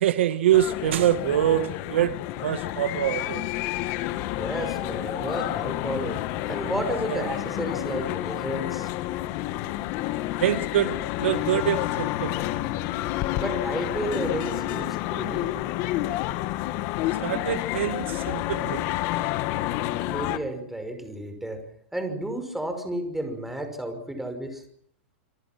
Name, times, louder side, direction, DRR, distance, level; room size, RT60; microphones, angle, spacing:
voice 1, 0.0-2.1 2.4-3.4 7.1-7.2 10.4-12.4 17.2-18.9, right 11 dB, 75° right, 1.6 m, -24 dB
sound 1, 0.5-20.4, left 15 dB, 45° left, 1.8 m, -29 dB
voice 2, 4.4-8.9 13.4-15.5 20.1-21.6 21.9-24.6, right 1 dB, 5° right, 5.6 m, -32 dB
27.0 x 26.5 x 6.1 m
hypercardioid pair, 140°, 6 cm